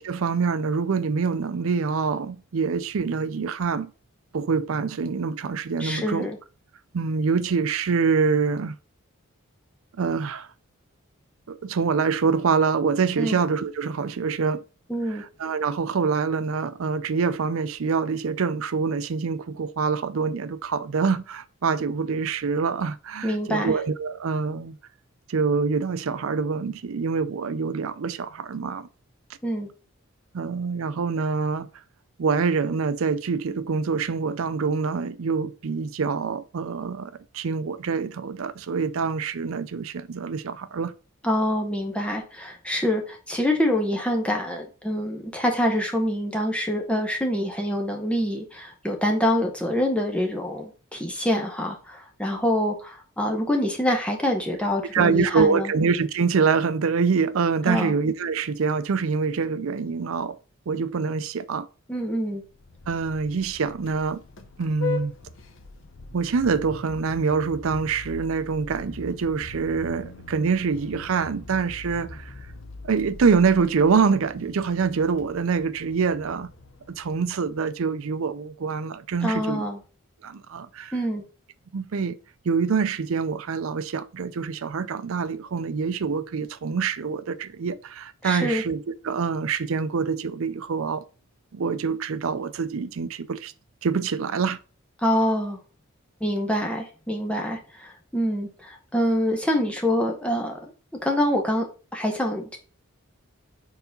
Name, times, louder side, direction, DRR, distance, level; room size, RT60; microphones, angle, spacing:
voice 1, 0.0-3.9 4.3-6.3 6.9-8.7 10.0-10.5 11.5-14.6 15.4-24.8 25.3-28.9 30.3-31.7 32.2-40.9 54.9-60.4 60.7-61.7 62.9-64.2 64.6-65.1 66.1-72.3 72.8-76.5 76.9-79.6 80.2-80.9 81.7-82.2 82.5-91.0 91.5-93.5 93.8-94.6, right 5 dB, 75° right, 0.5 m, -25 dB
voice 2, 5.8-6.4 13.2-13.4 14.9-15.2 23.2-23.8 29.4-29.7 41.2-55.7 57.6-57.9 61.9-62.4 79.2-79.8 80.9-81.2 88.2-88.6 95.0-95.6 96.2-100.6 101.0-101.7 101.9-102.6, equal, 5° left, 0.9 m, -25 dB
Vehicle horn car horn honking, 62.4-77.8, left 4 dB, 65° left, 0.9 m, -41 dB
4.7 x 3.9 x 5.2 m
head